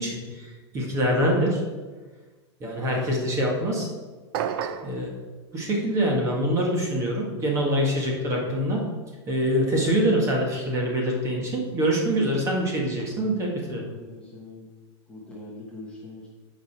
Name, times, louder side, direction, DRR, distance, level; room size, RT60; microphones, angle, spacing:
voice 1, 0.0-1.6 2.6-3.9 4.8-5.1 5.5-8.8 9.3-13.9, equal, 20° right, -1 dB, 1.7 m, -25 dB
sound 1, 4.3-5.0, right 8 dB, 55° right, 0.7 m, -29 dB
voice 2, 13.7-14.7 15.1-16.3, left 2 dB, 5° left, -5 dB, 1.2 m, -43 dB
9.4 x 5.0 x 6.1 m, 1.3 s
supercardioid pair, 165°, 15 cm